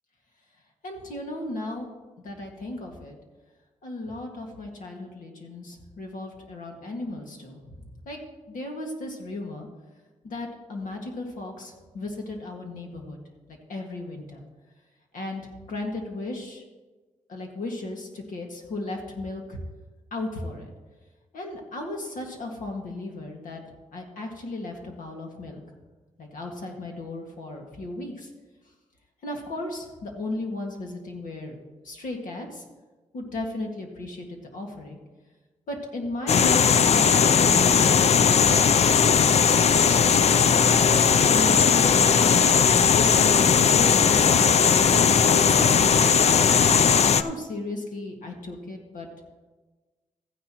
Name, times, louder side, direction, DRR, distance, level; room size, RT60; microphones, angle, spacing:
voice 1, 0.8-1.9 2.2-3.2 3.8-8.2 8.5-9.7 10.2-13.2 13.7-14.4 15.1-15.4 15.7-16.6 17.3-19.6 20.1-20.7 21.3-23.6 23.9-25.6 26.2-28.3 29.2-31.6 31.8-32.7 33.1-35.0 35.7-36.6 37.0-40.0 40.2-42.2 42.6-44.5 44.8-46.8 47.1-49.1, left 2 dB, 90° left, 2 dB, 1.9 m, -35 dB
sound 1, 36.3-47.2, left 6 dB, 55° left, 0.4 m, -18 dB
14.5 x 10.0 x 3.0 m, 1.2 s
cardioid pair, 90°, 13 cm